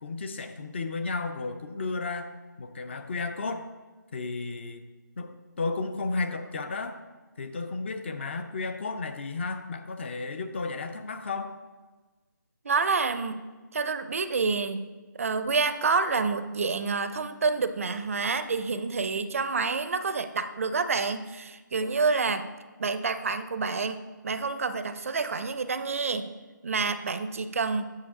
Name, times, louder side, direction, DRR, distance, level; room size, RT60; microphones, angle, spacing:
voice 1, 0.0-3.7 4.1-4.8 5.2-7.0 7.4-11.6, left 3 dB, 35° left, 8 dB, 0.5 m, -33 dB
voice 2, 12.6-13.4 13.7-14.9 15.2-22.5 22.8-26.3 26.6-27.8, right 4 dB, 45° right, 11 dB, 0.4 m, -28 dB
8.6 x 6.5 x 3.6 m, 1.3 s
figure-of-eight pair, 160°, 11 cm